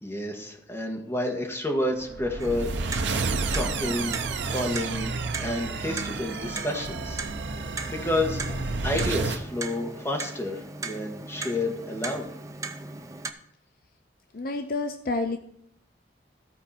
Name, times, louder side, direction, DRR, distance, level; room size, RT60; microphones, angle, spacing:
voice 1, 0.0-2.7 3.5-4.2 4.5-8.5 8.8-12.3, left 1 dB, 15° left, 1 dB, 1.2 m, -30 dB
sound 1, 2.0-9.4, right 4 dB, 70° right, 0.7 m, -31 dB
Clock, 2.4-13.3, right 3 dB, 15° right, 0.5 m, -38 dB
voice 2, 14.3-15.4, left 3 dB, 50° left, 7 dB, 0.5 m, -29 dB
13.5 x 4.7 x 4.2 m, 0.74 s
head